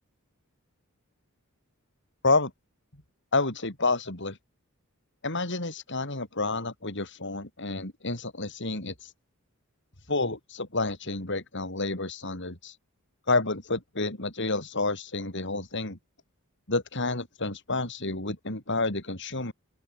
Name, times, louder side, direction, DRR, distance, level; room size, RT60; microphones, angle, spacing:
voice 1, 3.3-4.4 5.2-9.1 10.1-12.7 13.3-16.0 16.7-19.5, left 3 dB, 55° left, 4.5 m, -29 dB
open air
head